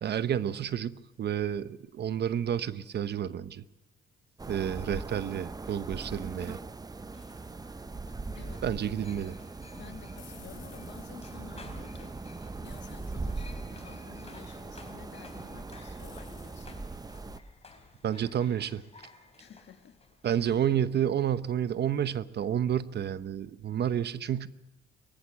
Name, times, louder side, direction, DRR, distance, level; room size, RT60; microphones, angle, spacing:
voice 1, 0.0-3.6 4.5-6.6 8.6-9.4 18.0-18.8 20.2-24.5, right 9 dB, 55° right, 0.9 m, -30 dB
sound 1, 4.4-17.4, right 3 dB, 20° right, 0.8 m, -40 dB
sound 2, 7.1-21.0, left 3 dB, 30° left, 4.7 m, -56 dB
sound 3, 7.2-17.9, left 6 dB, 85° left, 4.1 m, -58 dB
voice 2, 8.4-8.7 9.7-12.1 12.6-16.8 19.4-20.0, left 8 dB, 65° left, 2.0 m, -51 dB
23.0 x 15.0 x 7.5 m
cardioid pair, 90°, 20 cm